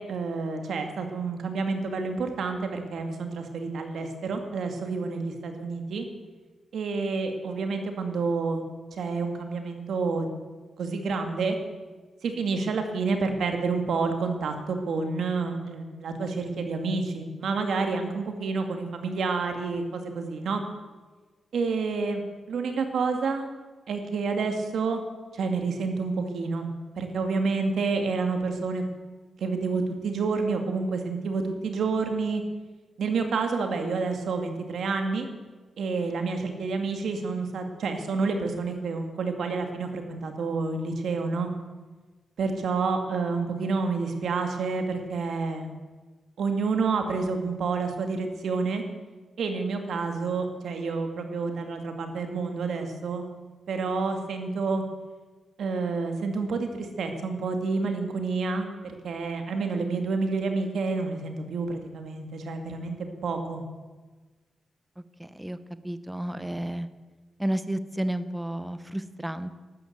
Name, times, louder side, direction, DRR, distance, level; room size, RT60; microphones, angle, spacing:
voice 1, 0.0-6.1 6.7-8.6 8.9-10.3 10.8-11.6 12.2-20.6 21.5-22.2 22.5-23.5 23.9-25.0 25.3-26.7 27.0-28.8 29.4-32.4 33.0-35.3 35.8-41.5 42.4-45.7 46.4-48.8 49.4-53.2 53.7-54.8 55.6-63.6, right 4 dB, 70° right, 5 dB, 2.2 m, -29 dB
voice 2, 65.2-65.6 65.8-66.9 67.4-69.6, right 1 dB, 5° right, 12 dB, 0.7 m, -31 dB
13.0 x 12.5 x 8.0 m, 1.3 s
wide cardioid pair, 175°, 0 cm